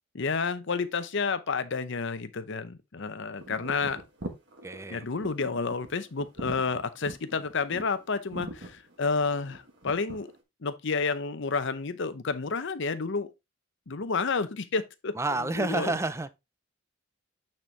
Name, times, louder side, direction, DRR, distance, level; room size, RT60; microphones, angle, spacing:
voice 1, 0.1-4.0 4.9-10.3 10.6-13.3 13.9-15.1 15.6-15.9, left 4 dB, 60° left, 0.8 m, -30 dB
sound 1, 3.4-10.4, right 1 dB, 55° right, 1.6 m, -43 dB
voice 2, 4.6-5.0 15.1-16.3, right 2 dB, 15° right, 0.5 m, -29 dB
8.7 x 4.4 x 3.3 m
head